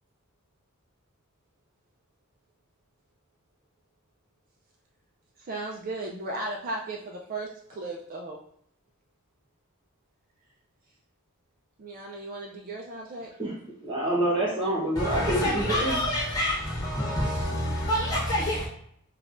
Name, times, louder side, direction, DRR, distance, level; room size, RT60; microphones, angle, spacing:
voice 1, 5.4-8.4 11.8-13.3, right 2 dB, 40° right, 0.4 m, -36 dB
voice 2, 13.8-15.9, right 1 dB, 20° right, 1.0 m, -27 dB
voice 3, 14.9-18.7, left 1 dB, 15° left, 1.3 m, -27 dB
5.2 x 2.3 x 2.5 m
head